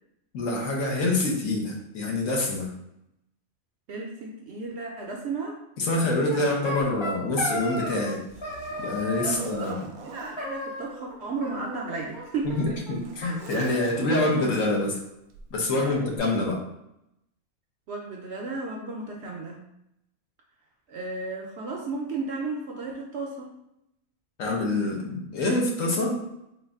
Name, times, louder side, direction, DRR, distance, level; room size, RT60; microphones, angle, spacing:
voice 1, 0.3-2.7 5.8-8.2 8.8-9.8 12.4-15.0 15.5-16.6 24.4-26.1, left 2 dB, 70° left, -1 dB, 1.2 m, -26 dB
voice 2, 3.9-5.6 6.3-6.5 9.2-12.8 15.8-15.9 17.9-19.6 20.9-23.5, right 3 dB, 65° right, 0 dB, 0.7 m, -34 dB
sound 1, 6.3-8.2 8.4-9.5 10.4-11.1 11.4-12.2 12.5-12.6 12.9-13.0 13.2-14.3, left 1 dB, 30° left, 0.5 m, -34 dB
Zipper (clothing), 6.8-6.9 7.5-10.4 11.4-14.3 15.3-15.6 16.1-16.2, right 5 dB, 80° right, 1.0 m, -44 dB
3.8 x 2.5 x 3.4 m, 0.82 s
omnidirectional pair, 1.5 m